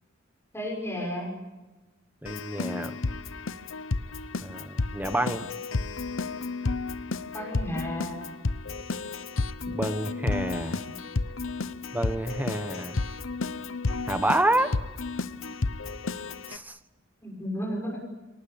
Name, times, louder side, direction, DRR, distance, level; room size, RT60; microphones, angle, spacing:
voice 1, 0.5-1.4 7.3-8.2 17.2-18.0, equal, 15° left, -2 dB, 6.3 m, -33 dB
voice 2, 2.2-3.0 4.4-5.5 9.7-10.8 11.9-13.0 14.1-14.7 16.5-16.8, right 1 dB, 10° right, 10 dB, 1.3 m, -28 dB
Keyboard (musical), 2.3-16.6, left 3 dB, 80° left, 1.0 m, -32 dB
29.0 x 19.0 x 8.8 m, 1.2 s
head